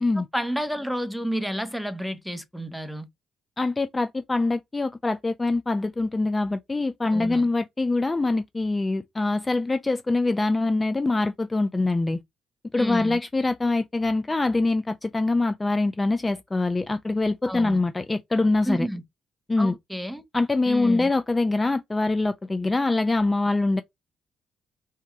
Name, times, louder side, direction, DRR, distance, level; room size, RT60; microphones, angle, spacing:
voice 1, 0.2-3.1 7.1-7.5 12.8-13.2 17.4-17.8 18.6-19.0 19.6-20.2 20.7-21.1, equal, ahead, 0.8 m, -30 dB
voice 2, 3.6-12.2 12.7-18.9 19.5-19.7 20.3-23.8, left 2 dB, 20° left, 0.4 m, -24 dB
3.4 x 2.9 x 4.5 m
cardioid pair, 90°, 0 cm